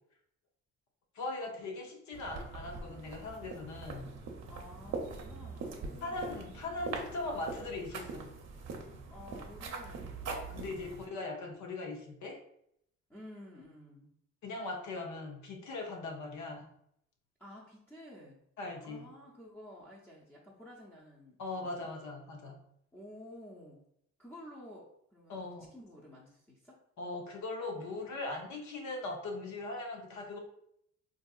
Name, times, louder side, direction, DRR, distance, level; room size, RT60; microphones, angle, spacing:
voice 1, 1.1-4.1 6.0-8.3 10.3-12.4 14.4-16.7 18.6-19.1 21.4-22.6 25.3-25.7 27.0-30.4, left 2 dB, 70° left, 2 dB, 0.6 m, -40 dB
sound 1, 2.1-11.1, right 4 dB, 60° right, 0.7 m, -42 dB
voice 2, 4.5-6.4 9.1-11.1 13.1-14.1 17.4-18.4 18.8-21.7 22.9-23.8 24.2-25.4 25.7-26.8, left 1 dB, 5° left, -8 dB, 0.6 m, -52 dB
3.5 x 2.7 x 2.3 m, 0.72 s
cardioid pair, 90°, 30 cm